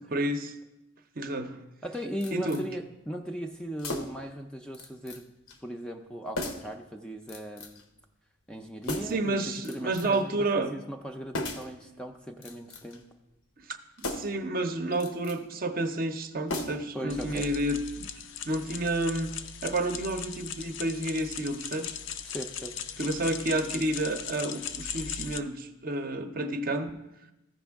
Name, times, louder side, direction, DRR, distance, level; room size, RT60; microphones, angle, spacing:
voice 1, 0.1-0.5 1.2-1.6 2.3-2.6 9.1-10.7 14.0-18.1 18.5-19.3 19.6-22.0 23.0-27.0, right 1 dB, 45° right, 7 dB, 0.6 m, -30 dB
voice 2, 1.8-5.3 5.6-7.8 8.5-13.0 16.9-17.5 22.2-22.7, equal, 5° left, 4 dB, 0.4 m, -38 dB
sound 1, 2.2-2.6 3.8-4.3 4.7-5.2 5.5-5.6 6.4-6.8 7.3-7.8 8.8-9.3 9.6-10.2 11.3-11.8 12.3-13.0 14.0-14.4 14.9-15.4 16.5-17.0 17.3-17.4, left 2 dB, 85° left, 0.9 m, -36 dB
sound 2, 17.1-25.4, left 7 dB, 65° left, 0.5 m, -39 dB
14.5 x 5.2 x 3.5 m, 0.93 s
head